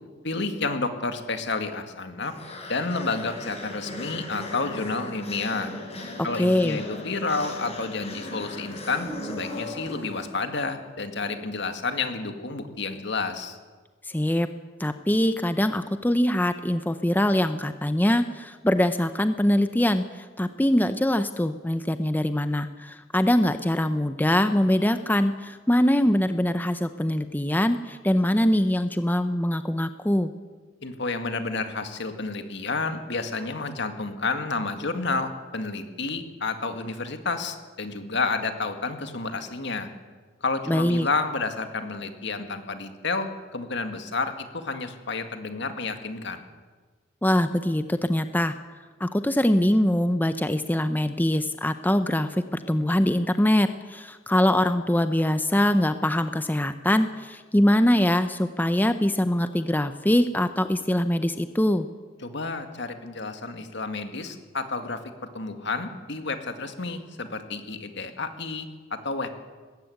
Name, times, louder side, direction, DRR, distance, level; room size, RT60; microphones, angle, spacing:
voice 1, 0.2-2.3 2.7-5.7 6.2-13.6 30.8-39.9 40.4-46.4 62.2-65.0 65.3-69.3, left 3 dB, 65° left, 7 dB, 2.1 m, -30 dB
sound 1, 2.2-10.7, left 1 dB, 35° left, 5.0 m, -38 dB
voice 2, 6.4-6.8 14.1-14.5 14.8-30.3 40.7-41.1 47.2-48.5 49.0-61.9, left 1 dB, 10° left, 10 dB, 0.6 m, -23 dB
19.5 x 15.0 x 9.4 m, 1.4 s
head